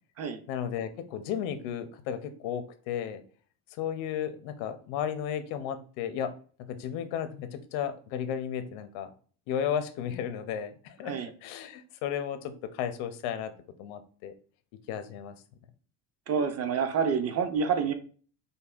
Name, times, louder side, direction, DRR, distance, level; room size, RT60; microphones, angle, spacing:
voice 1, 0.5-3.2 3.8-6.3 6.7-9.1 9.5-11.1 11.4-13.5 13.8-14.3 14.9-15.3, left 9 dB, 80° left, 10 dB, 0.6 m, -34 dB
voice 2, 16.3-17.9, right 6 dB, 35° right, 8 dB, 0.4 m, -28 dB
5.2 x 2.1 x 2.3 m, 0.42 s
cardioid pair, 130°, 46 cm